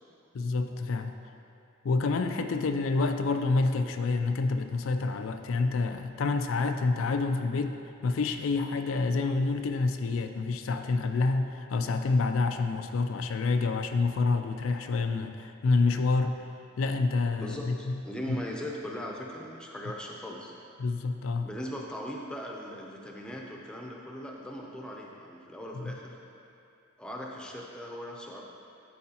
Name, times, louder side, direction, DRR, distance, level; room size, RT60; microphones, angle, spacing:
voice 1, 0.3-1.1 1.8-16.4 16.8-18.0 18.3-18.4 20.8-21.5 25.7-26.0, left 3 dB, 90° left, 7 dB, 0.4 m, -28 dB
voice 2, 17.4-20.5 21.4-26.0 27.0-28.4, equal, 5° left, -2 dB, 0.6 m, -39 dB
12.0 x 4.7 x 2.9 m, 2.6 s
head